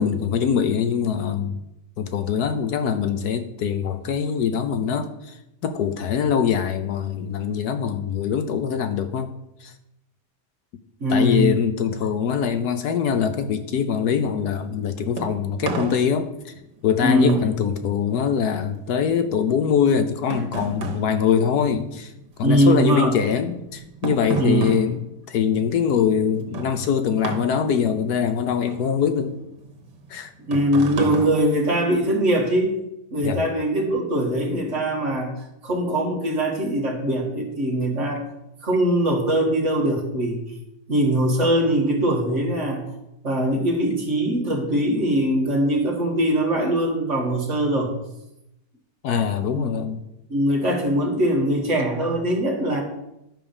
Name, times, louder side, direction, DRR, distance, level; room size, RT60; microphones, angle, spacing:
voice 1, 0.0-1.6 2.0-5.3 5.6-9.3 9.6-9.7 11.1-16.5 16.8-22.1 22.4-29.4 30.1-30.3 33.2-33.4 49.0-50.0, left 7 dB, 70° left, 9 dB, 1.2 m, -23 dB
voice 2, 11.0-11.6 17.0-17.5 22.4-23.2 24.4-24.8 30.5-32.7 33.1-38.2 38.6-40.4 40.9-42.9 43.2-47.9 49.5-49.6 50.3-52.8, right 1 dB, 45° right, 1 dB, 2.1 m, -22 dB
sound 1, 14.7-22.3 22.6-32.3, right 4 dB, 85° right, 1.9 m, -34 dB
11.0 x 4.9 x 7.1 m, 0.87 s
omnidirectional pair, 1.8 m